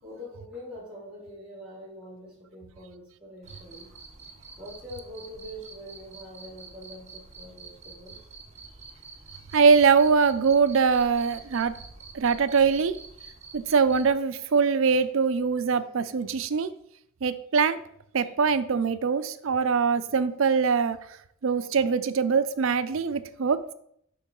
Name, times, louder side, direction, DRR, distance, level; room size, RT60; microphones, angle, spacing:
voice 1, 0.0-3.9 4.6-8.2, equal, 5° right, -8 dB, 2.6 m, -44 dB
Cricket, 3.4-14.1, right 4 dB, 30° right, 0.9 m, -47 dB
voice 2, 9.5-11.7 12.1-12.9 13.5-16.7 17.2-17.8 18.1-21.0 21.4-23.6, right 5 dB, 65° right, 12 dB, 0.5 m, -22 dB
6.9 x 6.0 x 3.8 m, 0.72 s
head